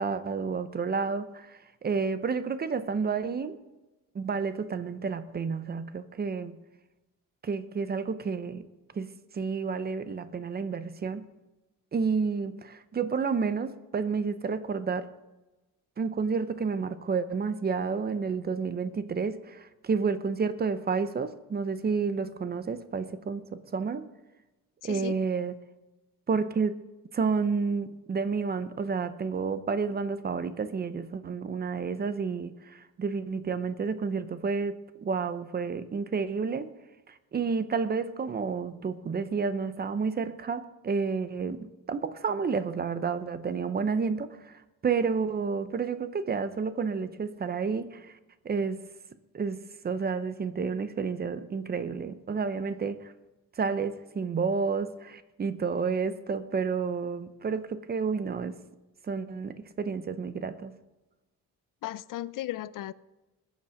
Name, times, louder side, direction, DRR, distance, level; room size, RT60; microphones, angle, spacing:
voice 1, 0.0-3.6 4.1-6.6 7.4-8.6 8.9-11.3 11.9-15.1 16.0-24.1 24.8-25.5 26.3-26.7 27.1-34.7 35.0-36.7 37.1-48.1 48.4-48.8 49.3-49.6 49.8-53.1 53.6-58.6 59.1-60.7, right 5 dB, 30° right, 13 dB, 0.7 m, -30 dB
voice 2, 24.8-25.1 61.8-62.9, left 14 dB, 70° left, 18 dB, 0.5 m, -35 dB
20.0 x 7.2 x 6.4 m, 1.1 s
cardioid pair, 160°, 34 cm